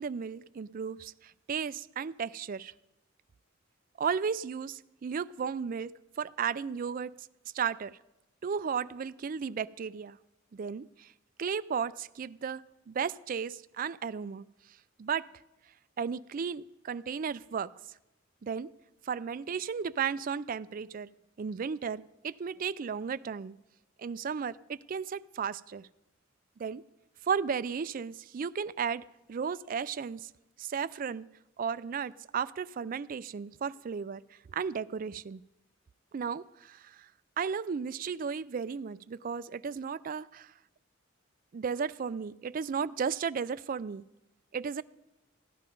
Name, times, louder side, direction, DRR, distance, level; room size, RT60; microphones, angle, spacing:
voice 1, 0.0-2.7 4.0-7.1 7.5-8.0 8.4-10.2 10.5-11.1 11.4-14.4 15.0-15.3 16.0-17.7 18.4-18.7 19.0-21.1 21.4-23.5 24.0-25.9 26.6-26.8 27.2-30.3 30.6-31.3 31.6-34.2 34.5-35.4 36.1-37.1 37.4-40.5 41.5-44.0 44.5-44.8, right 6 dB, 45° right, 16 dB, 0.3 m, -34 dB
15.0 x 11.5 x 5.3 m, 0.94 s
head